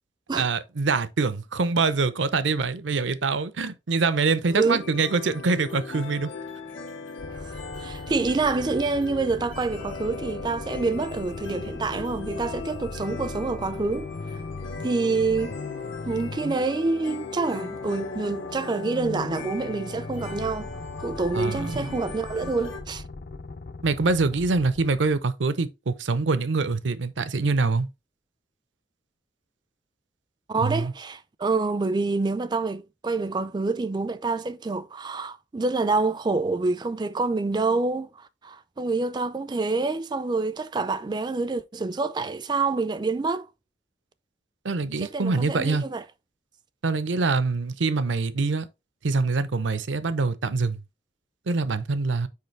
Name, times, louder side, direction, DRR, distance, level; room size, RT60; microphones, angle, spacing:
voice 1, 0.3-6.3 21.3-21.8 22.4-22.5 23.8-27.9 30.6-30.9 44.6-45.8 46.8-48.7 49.0-50.8 51.5-52.3, right 4 dB, 80° right, 0.7 m, -25 dB
voice 2, 4.5-4.8 7.3-14.4 14.8-15.6 16.0-20.7 21.0-23.0 30.5-43.5 45.0-46.0, right 3 dB, 25° right, 0.3 m, -27 dB
sound 1, 4.8-22.8, left 4 dB, 90° left, 1.9 m, -39 dB
sound 2, 7.2-25.2, left 3 dB, 55° left, 0.5 m, -39 dB
6.7 x 5.1 x 3.2 m
head